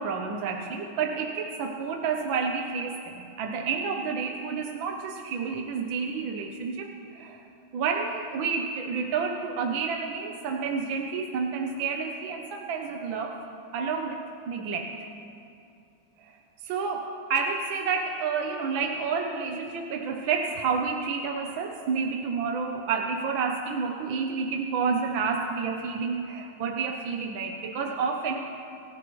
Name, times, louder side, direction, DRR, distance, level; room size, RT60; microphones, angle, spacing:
voice 1, 0.0-7.4 7.7-13.4 13.7-14.9 16.2-16.4 16.6-28.5, right 5 dB, 70° right, 3 dB, 1.5 m, -30 dB
26.0 x 14.5 x 3.1 m, 2.6 s
omnidirectional pair, 2.3 m